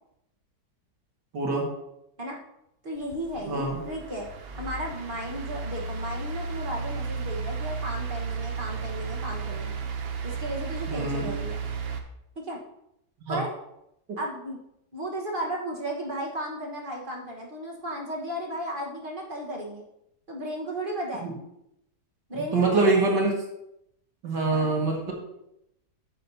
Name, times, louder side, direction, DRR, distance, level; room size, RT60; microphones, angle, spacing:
voice 1, 1.3-1.7 3.5-3.8 10.9-11.3 13.3-13.4 21.2-21.3 22.3-23.3 24.2-25.1, right 3 dB, 80° right, -1 dB, 2.5 m, -24 dB
voice 2, 2.8-4.3 4.6-9.8 10.2-11.6 12.3-12.6 13.3-13.5 14.2-14.6 14.9-19.8 20.3-21.3 22.3-23.3 24.5-24.7, right 1 dB, 35° right, -2 dB, 1.4 m, -34 dB
sound 1, 2.9-12.0, right 5 dB, 50° right, 0.7 m, -34 dB
10.5 x 7.6 x 2.8 m, 0.81 s
omnidirectional pair, 1.8 m